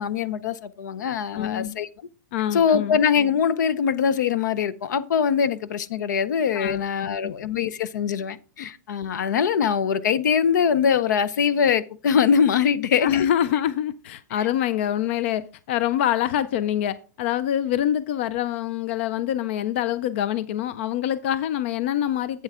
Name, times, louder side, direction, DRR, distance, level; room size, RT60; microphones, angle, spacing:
voice 1, 0.0-1.9 2.5-13.3 14.3-14.5, left 7 dB, 70° left, 0.7 m, -22 dB
voice 2, 1.3-1.7 2.3-3.0 6.5-6.8 7.2-7.3 8.6-8.7 13.0-22.4, left 11 dB, 40° left, 0.4 m, -25 dB
8.9 x 8.1 x 3.6 m
supercardioid pair, 175°, 10 cm